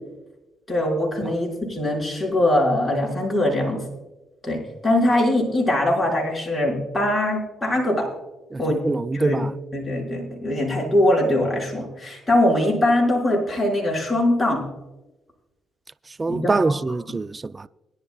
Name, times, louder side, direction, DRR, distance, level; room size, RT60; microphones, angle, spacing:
voice 1, 0.7-3.8 4.4-8.1 8.6-8.8 9.1-9.4 9.7-14.7 16.3-16.7, left 1 dB, 10° left, 5.1 m, -22 dB
voice 2, 8.5-9.5 16.2-17.7, right 3 dB, 25° right, 0.3 m, -24 dB
21.0 x 11.0 x 2.3 m
cardioid pair, 90°, 0 cm